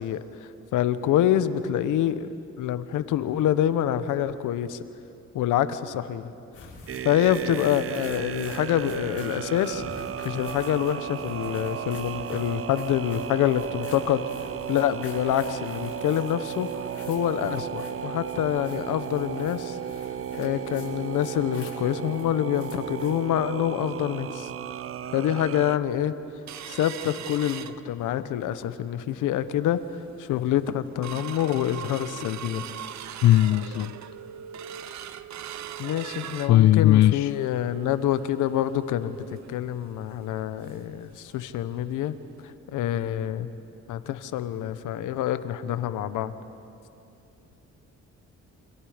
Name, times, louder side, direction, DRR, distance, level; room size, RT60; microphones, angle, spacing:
voice 1, 0.0-2.3 2.6-4.8 5.3-6.3 7.0-9.8 10.2-19.8 20.4-24.5 25.1-26.1 26.7-29.8 30.2-32.7 35.8-42.2 42.4-43.5 43.9-46.3, left 11 dB, 85° left, 12 dB, 1.1 m, -26 dB
sound 1, 6.5-23.2, left 3 dB, 50° left, 8.0 m, -48 dB
sound 2, 6.9-25.8, right 9 dB, 50° right, 0.6 m, -35 dB
sound 3, 26.5-28.3 28.7-28.8 29.2-29.5 30.0-30.1 30.5-41.0 41.3-41.4 41.8-42.0 42.5-42.6, right 10 dB, 65° right, 0.9 m, -41 dB
voice 2, 33.2-33.9 36.5-37.3, left 13 dB, 65° left, 14 dB, 0.5 m, -18 dB
29.0 x 25.5 x 5.1 m, 2.7 s
cardioid pair, 90°, 30 cm